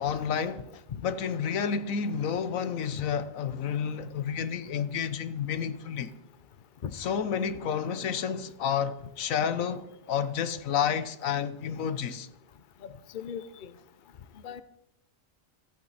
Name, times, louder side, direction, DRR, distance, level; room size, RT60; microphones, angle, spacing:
voice 1, 0.0-6.1 6.9-12.3, left 7 dB, 85° left, 1.2 m, -30 dB
voice 2, 12.8-13.7 14.4-14.6, left 8 dB, 45° left, 0.8 m, -38 dB
26.5 x 9.0 x 4.1 m
omnidirectional pair, 1.4 m